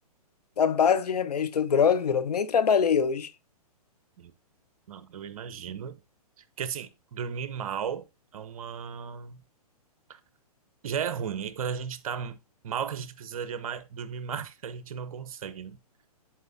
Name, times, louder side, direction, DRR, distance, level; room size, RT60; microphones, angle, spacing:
voice 1, 0.6-3.3, left 7 dB, 80° left, 0.7 m, -23 dB
voice 2, 4.9-6.0 6.6-8.0 8.3-9.4 10.1-10.2 10.8-12.4 12.6-15.8, right 7 dB, 60° right, 0.8 m, -35 dB
11.0 x 4.3 x 2.7 m
hypercardioid pair, 130°, 20 cm